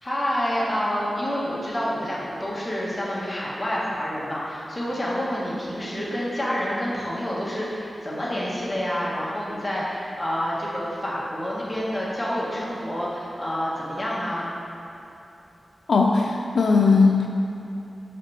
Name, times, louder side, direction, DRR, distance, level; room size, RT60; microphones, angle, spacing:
voice 1, 0.0-14.5, equal, 20° left, -6 dB, 1.4 m, -28 dB
voice 2, 15.9-17.3, left 4 dB, 80° left, 0 dB, 0.3 m, -18 dB
6.1 x 5.1 x 4.2 m, 2.9 s
wide cardioid pair, 100°, 0 cm